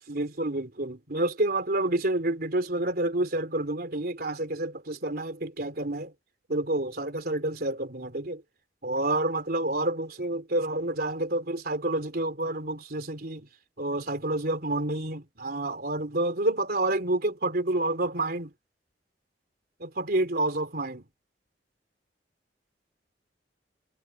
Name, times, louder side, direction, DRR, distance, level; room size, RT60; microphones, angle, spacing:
voice 1, 0.1-6.1 6.5-8.4 8.8-13.5 13.8-18.5 19.8-21.1, right 2 dB, 60° right, 3.7 m, -29 dB
head